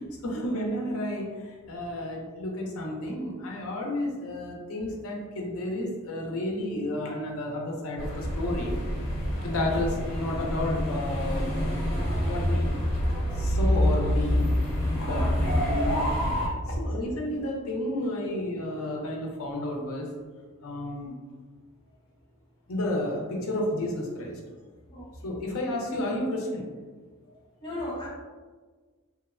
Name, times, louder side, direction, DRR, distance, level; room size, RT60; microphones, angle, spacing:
voice 1, 0.2-8.7 9.4-11.6 12.2-12.7 13.3-14.5 14.9-15.3 15.7-16.1 16.7-20.1 20.6-21.2 22.7-24.4 25.2-26.6, left 1 dB, 70° left, -1 dB, 0.5 m, -31 dB
sound 1, 8.0-16.5, equal, 40° left, 1.1 m, -27 dB
voice 2, 27.6-28.1, left 1 dB, 20° left, -8 dB, 0.7 m, -35 dB
2.9 x 2.0 x 2.4 m, 1.4 s
head